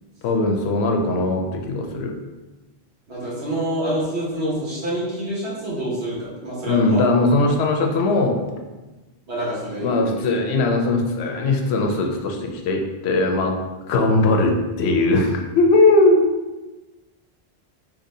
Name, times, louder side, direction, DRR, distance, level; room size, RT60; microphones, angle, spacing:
voice 1, 0.2-2.1 6.6-8.4 9.8-13.6 13.9-16.3, left 2 dB, 80° left, 2 dB, 0.8 m, -19 dB
voice 2, 3.1-7.1 9.3-10.3, right 1 dB, 85° right, -7 dB, 1.5 m, -27 dB
3.9 x 2.8 x 2.6 m, 1.2 s
omnidirectional pair, 1.1 m